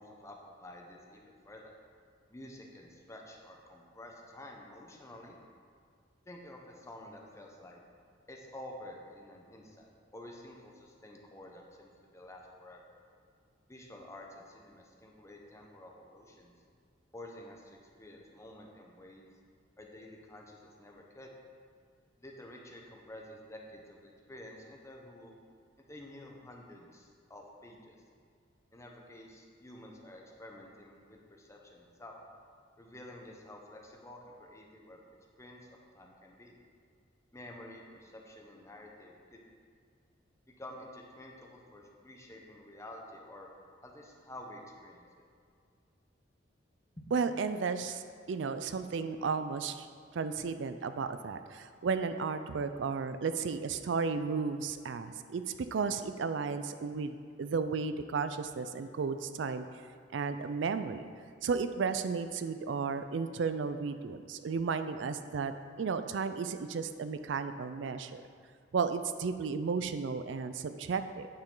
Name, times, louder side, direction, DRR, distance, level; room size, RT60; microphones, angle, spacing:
voice 1, 0.0-1.7 2.3-5.4 6.3-7.8 8.3-13.0 13.7-16.5 17.1-19.3 19.8-21.3 22.2-25.4 25.9-28.0 28.7-32.2 32.8-35.0 35.4-36.5 37.3-39.4 40.6-43.5 43.8-45.2, left 1 dB, 15° left, 0 dB, 1.0 m, -50 dB
voice 2, 47.1-48.0 48.3-49.9 50.1-55.4 55.7-59.7 60.1-61.1 61.4-65.5 65.8-68.2 68.7-71.3, right 5 dB, 70° right, 10 dB, 0.4 m, -33 dB
8.7 x 6.6 x 3.9 m, 2.2 s
head